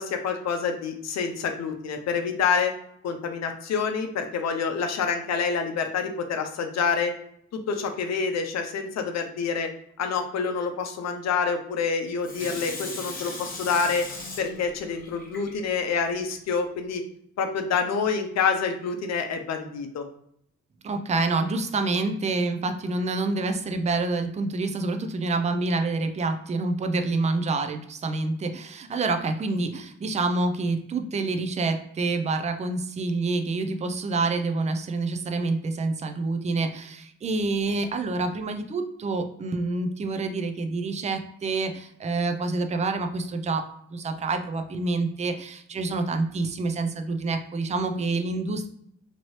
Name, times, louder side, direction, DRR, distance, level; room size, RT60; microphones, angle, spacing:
voice 1, 0.0-2.7 3.0-7.1 7.7-9.7 10.0-14.0 14.4-17.0 17.4-20.0, left 5 dB, 60° left, 5 dB, 0.7 m, -27 dB
Water tap faucet / Sink (filling or washing), 12.2-16.0 16.5-16.6, left 2 dB, 30° left, 1.1 m, -38 dB
voice 2, 20.8-43.6 43.9-48.7, right 3 dB, 25° right, 6 dB, 0.4 m, -27 dB
2.9 x 2.7 x 3.1 m, 0.72 s
cardioid pair, 90°, 30 cm